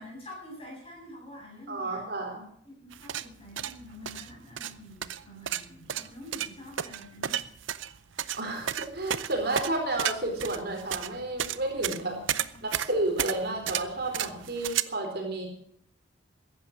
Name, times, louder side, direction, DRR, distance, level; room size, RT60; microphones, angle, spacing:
voice 1, 0.0-2.0 2.6-7.5 11.9-12.7, left 1 dB, 30° left, -2 dB, 8.0 m, -47 dB
voice 2, 1.7-2.5 8.4-12.2 12.6-15.5, right 2 dB, 50° right, 2 dB, 4.1 m, -31 dB
sound 1, 2.9-14.8, right 10 dB, 75° right, 0.7 m, -33 dB
15.0 x 11.0 x 6.5 m, 0.67 s
head